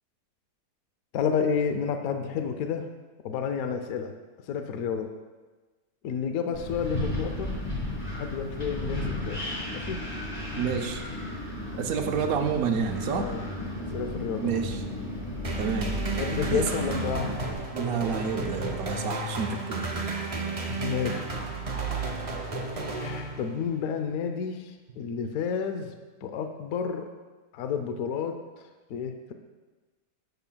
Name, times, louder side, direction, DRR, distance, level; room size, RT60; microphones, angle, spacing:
voice 1, 1.1-2.9 3.2-4.1 4.5-5.1 6.0-7.5 8.1-10.0 13.1-13.4 13.8-14.6 16.2-17.3 20.2-21.2 22.9-25.9 26.2-27.1 27.5-29.3, left 6 dB, 70° left, 7 dB, 1.0 m, -31 dB
Wind, 6.5-17.5, left 1 dB, 15° left, 2.0 m, -34 dB
voice 2, 10.6-11.0 11.8-13.3 14.4-14.8 15.6-16.0 16.5-16.6 17.7-20.0, right 6 dB, 65° right, 5 dB, 1.0 m, -29 dB
sound 1, 15.4-23.8, right 3 dB, 50° right, 0.4 m, -32 dB
13.0 x 6.8 x 2.2 m, 1.3 s
omnidirectional pair, 1.7 m